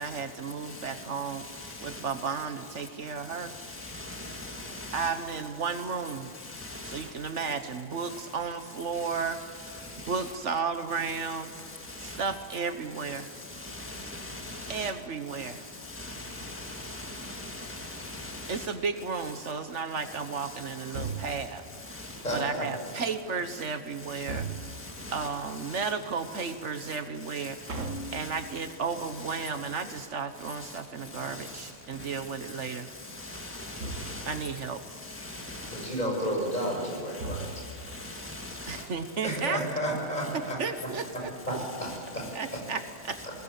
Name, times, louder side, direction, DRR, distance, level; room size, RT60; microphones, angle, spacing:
voice 1, 0.0-1.5 1.8-3.5 4.9-6.3 6.9-9.4 9.7-11.5 12.0-13.3 14.7-15.6 18.5-21.6 22.3-24.4 25.1-32.9 34.3-34.8 38.7-39.6 40.3-41.3 42.3-43.2, right 5 dB, 70° right, 1.5 m, -33 dB
voice 2, 0.6-2.0 3.4-5.1 5.7-5.8 6.3-7.1 8.0-8.2 8.9-10.3 11.0-11.2 11.7-12.3 13.0-14.9 15.3-18.7 19.2-19.3 20.4-21.3 21.9-22.4 24.1-24.3 24.6-25.3 25.6-25.9 26.3-26.5 27.3-28.3 28.9-29.5 29.8-29.9 30.6-30.8 31.1-31.6 32.1-34.5 35.0-36.0 36.5-38.8 41.5-42.6 43.1-43.2, left 2 dB, 10° right, 2.0 m, -42 dB
sound 1, 20.9-21.7 24.2-25.1 27.7-28.8 33.8-34.5 37.2-38.0, right 3 dB, 90° right, 1.8 m, -38 dB
voice 3, 22.2-22.7 35.7-37.5 39.2-40.6 41.1-42.2 43.2-43.3, equal, 35° left, 7.0 m, -32 dB
21.5 x 20.0 x 8.4 m
omnidirectional pair, 1.3 m